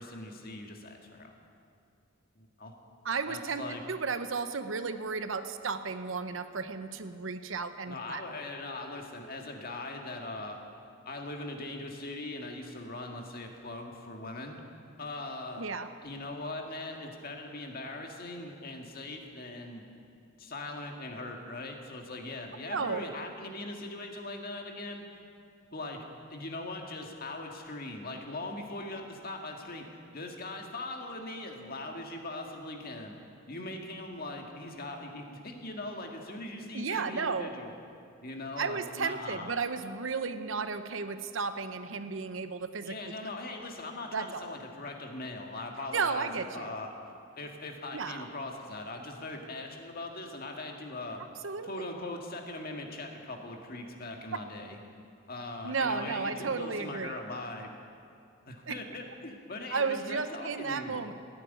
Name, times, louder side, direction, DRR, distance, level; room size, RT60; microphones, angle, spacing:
voice 1, 0.0-1.3 2.3-2.7 3.3-3.8 7.9-10.6 11.0-14.6 15.0-15.7 16.0-19.8 20.4-25.0 25.7-29.9 30.1-33.1 33.5-37.7 38.2-39.5 42.8-46.9 47.4-51.2 51.6-54.8 55.3-57.7 58.4-61.0, left 2 dB, 50° left, 3 dB, 1.8 m, -40 dB
voice 2, 3.0-8.2 15.6-15.9 22.7-23.0 36.7-37.5 38.6-43.1 44.1-44.5 45.9-46.7 47.9-48.2 51.4-51.9 54.3-54.4 55.6-57.2 58.7-58.8 59.7-61.1, right 5 dB, 85° right, 10 dB, 0.8 m, -33 dB
15.5 x 9.5 x 9.4 m, 2.4 s
head